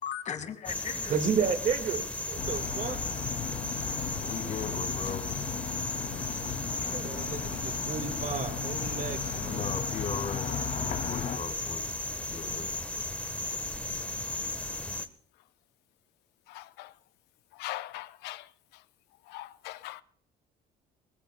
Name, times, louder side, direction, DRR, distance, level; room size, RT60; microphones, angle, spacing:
voice 1, 0.0-1.2 4.2-5.2 6.3-6.5 7.0-7.2 9.4-10.5 10.8-14.7, left 7 dB, 45° left, 2.0 m, -39 dB
sound 1, 0.7-15.1, left 2 dB, 10° left, 1.2 m, -35 dB
voice 2, 1.1-3.0 6.9-9.6, right 6 dB, 50° right, 1.8 m, -32 dB
sound 2, 2.3-11.4, left 8 dB, 65° left, 2.3 m, -36 dB
voice 3, 16.6-16.9 17.6-18.4 19.3-20.0, left 16 dB, 90° left, 0.7 m, -40 dB
22.0 x 20.0 x 2.2 m
cardioid pair, 110°, 17 cm